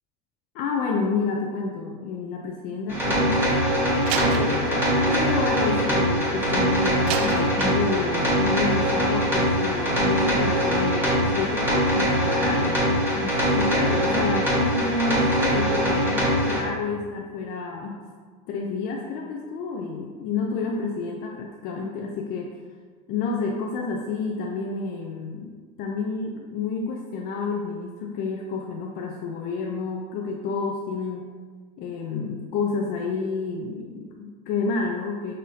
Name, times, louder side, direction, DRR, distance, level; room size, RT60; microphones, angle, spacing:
voice 1, 0.5-3.4 4.1-18.0 18.5-22.5 23.1-25.5 25.8-31.3 31.8-35.3, left 4 dB, 55° left, 1 dB, 0.4 m, -29 dB
sound 1, 2.9-16.6, equal, 10° right, 1.4 m, -22 dB
Slam, 4.1-6.5 7.1-8.3, right 6 dB, 90° right, 0.5 m, -32 dB
6.4 x 2.7 x 2.7 m, 1.5 s
cardioid pair, 145°, 19 cm